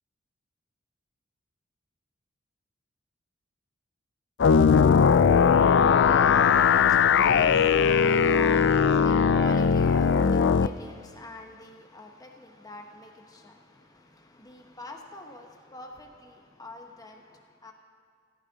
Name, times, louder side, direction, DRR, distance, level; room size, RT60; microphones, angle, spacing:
sound 1, 4.4-10.7, left 6 dB, 60° left, 0.4 m, -19 dB
voice 1, 5.3-17.7, left 1 dB, 20° left, 1.1 m, -45 dB
20.0 x 15.5 x 4.1 m
head